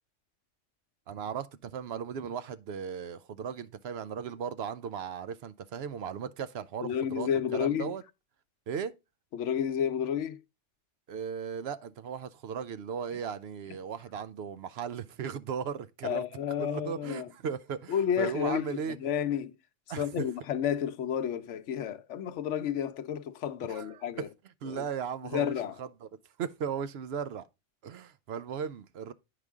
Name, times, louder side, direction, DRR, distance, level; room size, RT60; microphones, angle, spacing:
voice 1, 1.1-8.0 8.7-8.9 11.1-16.2 16.6-19.0 19.9-20.2 23.7-24.3 24.6-26.1 26.4-27.5 27.8-29.1, right 7 dB, 65° right, 0.8 m, -37 dB
voice 2, 6.8-7.9 9.3-10.4 16.0-17.3 17.9-19.5 20.0-24.3 24.7-24.9 25.3-25.8, left 9 dB, 75° left, 1.0 m, -31 dB
9.3 x 5.0 x 3.5 m
omnidirectional pair, 1.2 m